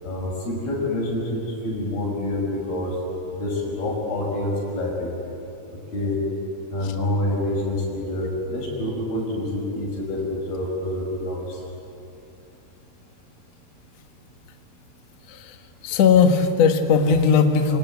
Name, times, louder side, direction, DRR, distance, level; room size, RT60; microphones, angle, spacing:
voice 1, 0.0-3.0 3.3-5.2 5.9-6.2 6.7-11.6, left 1 dB, 85° left, -2 dB, 7.5 m, -27 dB
voice 2, 15.8-17.8, left 6 dB, 55° left, 5 dB, 2.3 m, -18 dB
27.5 x 25.0 x 8.3 m, 2.8 s
omnidirectional pair, 4.2 m